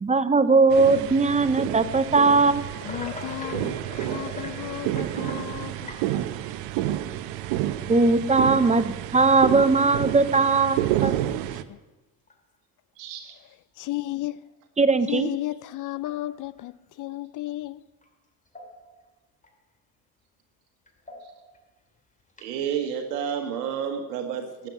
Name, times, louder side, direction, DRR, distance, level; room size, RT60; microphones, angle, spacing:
voice 1, 0.0-2.7 7.9-11.1 14.8-15.3, right 3 dB, 15° right, 0.7 m, -20 dB
sound 1, 0.7-11.6, right 13 dB, 65° right, 1.0 m, -30 dB
voice 2, 2.8-6.0 11.7-11.8 13.8-14.4 15.1-17.8, left 16 dB, 40° left, 0.6 m, -33 dB
sound 2, 2.8-6.7 7.5-7.6 8.6-8.7 9.4-9.8 10.2-10.3 10.8-10.9 12.3-12.4 15.2-15.3 16.0-16.6 18.0-18.1 18.5-19.1 19.4-19.5 20.9-21.6 22.3-22.6, left 3 dB, 15° left, 2.4 m, -42 dB
voice 3, 13.0-13.3 21.2-21.4 22.4-24.7, right 8 dB, 90° right, 1.5 m, -30 dB
12.5 x 7.6 x 9.3 m
supercardioid pair, 90°, 47 cm